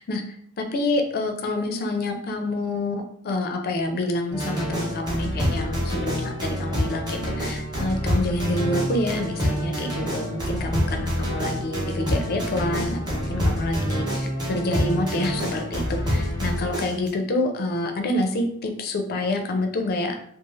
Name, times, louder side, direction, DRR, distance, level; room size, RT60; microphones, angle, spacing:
voice 1, 0.0-20.2, left 2 dB, 45° left, 4 dB, 0.4 m, -27 dB
sound 1, 4.3-17.1, equal, 20° right, 0.9 m, -27 dB
3.0 x 2.3 x 2.4 m, 0.66 s
head